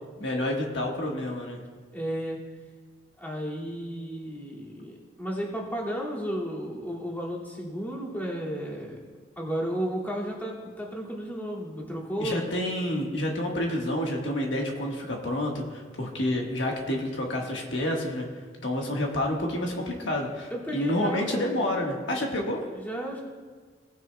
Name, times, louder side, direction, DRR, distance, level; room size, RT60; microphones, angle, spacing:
voice 1, 0.2-1.6 12.2-18.3 18.6-22.6, left 1 dB, 75° left, 0 dB, 1.4 m, -29 dB
voice 2, 1.9-2.4 3.2-9.0 9.4-12.4 20.5-21.8 22.1-22.3 22.7-23.2, equal, 10° left, -5 dB, 2.2 m, -33 dB
18.5 x 9.3 x 2.2 m, 1.5 s
head